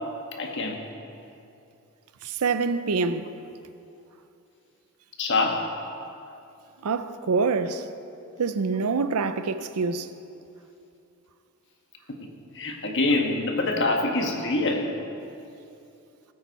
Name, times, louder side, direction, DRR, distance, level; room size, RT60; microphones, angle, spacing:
voice 1, 0.4-0.8 5.2-5.8 12.1-12.2 12.5-14.9, left 2 dB, 55° left, 1.5 m, -25 dB
voice 2, 2.2-3.3 6.8-7.9 8.4-10.1, right 4 dB, 85° right, 0.6 m, -26 dB
18.5 x 8.6 x 4.1 m
head